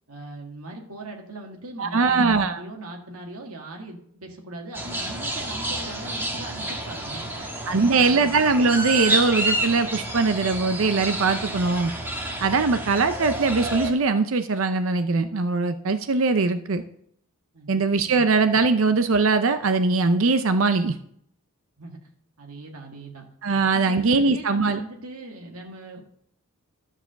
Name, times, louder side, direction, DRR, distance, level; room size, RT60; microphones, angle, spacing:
voice 1, 0.1-8.3 17.5-18.2 21.8-22.0 22.4-23.3 23.7-26.1, right 2 dB, 80° right, 1 dB, 1.8 m, -40 dB
voice 2, 1.8-2.6 7.7-11.9 12.4-16.8 17.7-20.9 23.4-24.8, right 4 dB, 65° right, 10 dB, 0.6 m, -21 dB
sound 1, 4.7-13.9, right 1 dB, 10° right, 1.4 m, -30 dB
12.5 x 4.9 x 6.6 m, 0.68 s
head